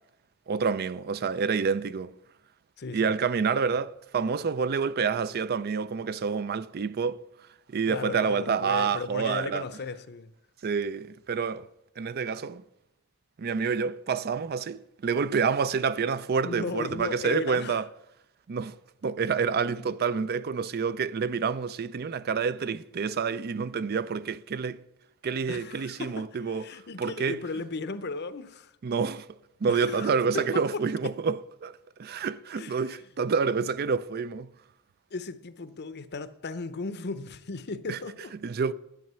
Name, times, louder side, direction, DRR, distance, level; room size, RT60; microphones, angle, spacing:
voice 1, 0.5-2.1 2.9-7.2 7.7-9.6 10.6-11.7 12.0-12.6 13.4-17.9 18.5-18.7 19.0-24.8 25.2-26.7 27.0-27.4 28.8-29.3 29.6-34.5 37.9-38.0 38.4-38.7, right 5 dB, 45° right, 0.4 m, -28 dB
voice 2, 2.8-3.1 7.9-10.3 16.4-17.8 25.5-28.7 29.7-30.8 32.6-32.8 35.1-38.3, left 3 dB, 50° left, 0.7 m, -36 dB
11.0 x 8.7 x 6.8 m
head